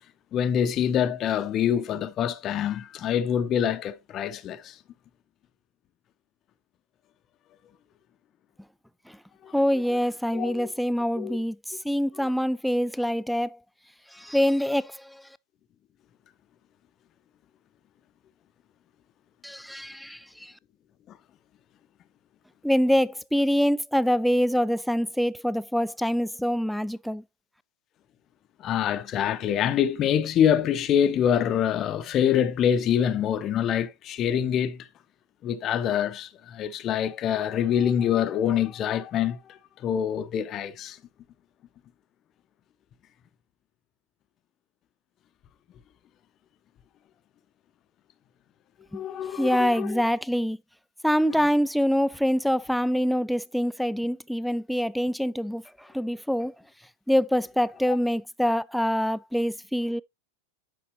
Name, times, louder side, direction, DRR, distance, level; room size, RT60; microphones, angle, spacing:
voice 1, 0.3-4.8 9.4-9.5 9.9-10.0 10.3-10.7 11.2-11.4 12.2-12.4 21.1-21.2 28.6-34.9 35.4-41.0 48.9-50.0 57.9-58.0, left 9 dB, 30° left, 0.7 m, -25 dB
voice 2, 9.5-13.6 14.1-15.2 19.4-20.5 22.6-27.2 48.9-49.0 49.3-50.6 51.0-56.5 57.1-60.0, equal, ahead, 0.4 m, -25 dB
9.5 x 5.9 x 3.0 m
figure-of-eight pair, 90°, 0 cm